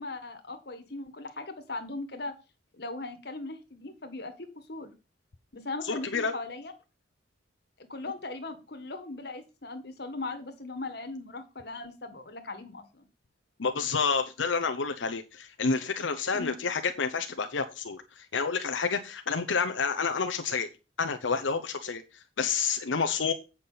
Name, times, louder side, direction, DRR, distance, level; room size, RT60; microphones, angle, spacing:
voice 1, 0.0-2.3 2.7-4.9 5.5-6.7 7.8-13.1 16.3-16.6, left 2 dB, 60° left, 7 dB, 1.6 m, -39 dB
voice 2, 5.8-6.4 13.6-20.7 21.0-23.3, left 5 dB, 90° left, 7 dB, 0.8 m, -29 dB
8.5 x 5.9 x 5.6 m, 0.30 s
head